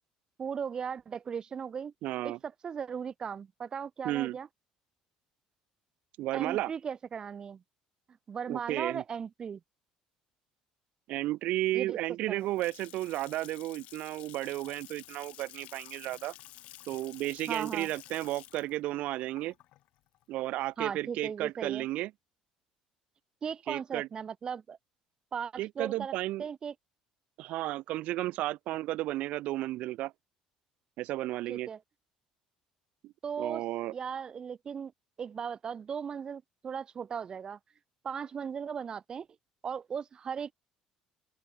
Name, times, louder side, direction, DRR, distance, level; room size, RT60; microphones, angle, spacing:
voice 1, 0.4-1.9 2.2-4.5 6.3-7.6 8.3-9.6 11.7-12.0 12.3-12.5 17.5-17.9 20.8-21.8 23.4-24.8 25.3-26.1 26.4-26.7 31.5-31.8 33.2-33.6 33.9-34.9 35.2-37.6 38.0-39.3 39.6-40.5, right 7 dB, 35° right, 2.7 m, -37 dB
voice 2, 2.0-2.4 4.0-4.4 6.2-6.7 8.5-9.0 11.1-16.3 16.9-19.5 20.3-22.1 23.7-24.1 25.6-26.4 27.4-30.1 31.0-31.7 33.0-33.1 33.4-33.9, right 16 dB, 65° right, 4.1 m, -33 dB
Water tap faucet / Sink (filling or washing) / Splash splatter, 12.1-21.0, left 16 dB, 65° left, 4.0 m, -52 dB
open air
cardioid pair, 115°, 2 cm